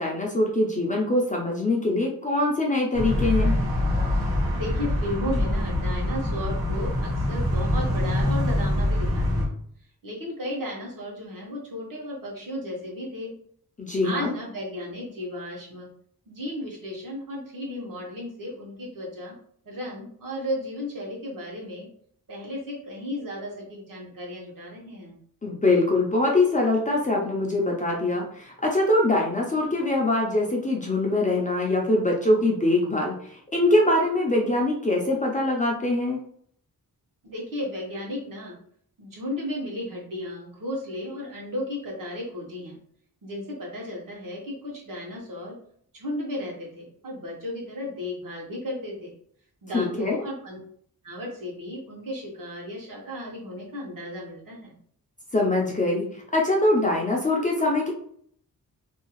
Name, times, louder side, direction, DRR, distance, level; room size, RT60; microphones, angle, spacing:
voice 1, 0.0-3.6 13.8-14.3 25.4-36.2 49.7-50.2 55.3-57.9, left 2 dB, 20° left, -2 dB, 0.4 m, -23 dB
sound 1, 2.9-9.5, left 1 dB, 85° right, 1.1 m, -24 dB
voice 2, 4.5-9.5 10.0-13.3 14.0-15.9 16.3-19.3 19.6-21.9 22.3-25.2 37.2-38.5 39.0-42.8 43.2-45.5 45.9-49.1 49.6-50.6 51.0-54.7, left 1 dB, 60° right, -3 dB, 1.1 m, -34 dB
2.7 x 2.3 x 2.9 m, 0.62 s
wide cardioid pair, 170°, 36 cm